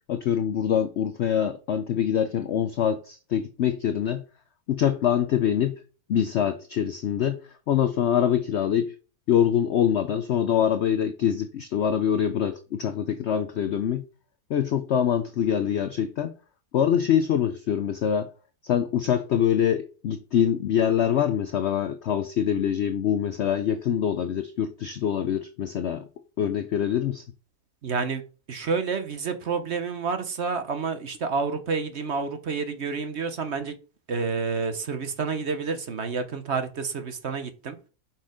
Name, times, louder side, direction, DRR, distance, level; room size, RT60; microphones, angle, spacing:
voice 1, 0.1-4.2 4.7-5.8 6.1-7.4 7.7-8.9 9.3-14.0 14.5-16.3 16.7-18.3 18.6-26.1 26.4-27.2, left 9 dB, 75° left, 0.6 m, -24 dB
voice 2, 27.8-28.2 28.5-33.7 34.1-37.8, right 5 dB, 50° right, 1.0 m, -29 dB
6.0 x 5.8 x 4.9 m
omnidirectional pair, 1.7 m